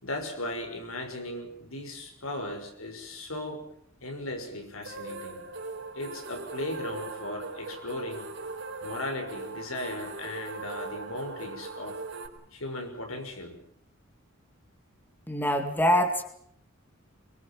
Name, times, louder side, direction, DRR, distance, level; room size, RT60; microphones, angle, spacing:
voice 1, 0.0-3.6 4.0-5.4 5.9-8.3 8.8-12.0 12.5-13.6, left 1 dB, 85° left, 5 dB, 6.0 m, -37 dB
sound 1, 4.8-12.3, right 3 dB, 60° right, 3.8 m, -40 dB
voice 2, 15.3-16.2, equal, 10° left, 6 dB, 2.2 m, -24 dB
24.0 x 23.0 x 7.5 m, 0.66 s
head